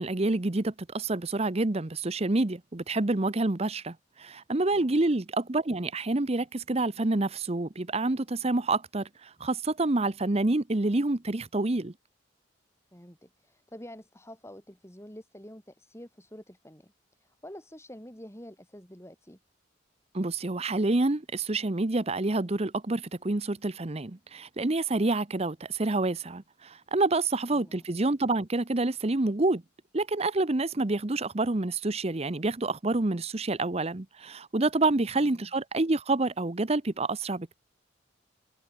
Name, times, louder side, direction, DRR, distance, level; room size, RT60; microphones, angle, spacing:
voice 1, 0.0-11.9 20.1-29.6 29.9-37.6, right 2 dB, 30° right, 0.9 m, -28 dB
voice 2, 12.9-16.9 17.2-19.4 27.5-27.8 35.2-35.5, equal, 15° left, 7.2 m, -48 dB
head